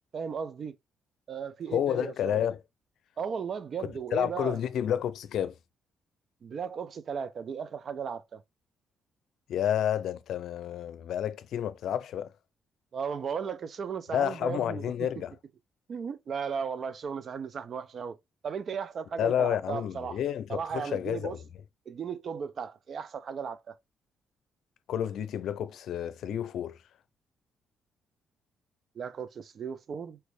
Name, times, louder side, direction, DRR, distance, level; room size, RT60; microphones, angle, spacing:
voice 1, 0.1-0.7 1.3-2.5 3.2-4.6 6.4-8.4 12.9-14.9 15.9-18.2 18.4-20.2 20.5-21.4 21.9-23.7 29.0-30.2, right 6 dB, 50° right, 0.6 m, -36 dB
voice 2, 1.7-2.6 4.1-5.6 9.5-12.3 14.1-15.3 19.2-21.4 24.9-26.8, left 10 dB, 75° left, 0.5 m, -30 dB
4.5 x 3.1 x 3.2 m
cardioid pair, 90°, 0 cm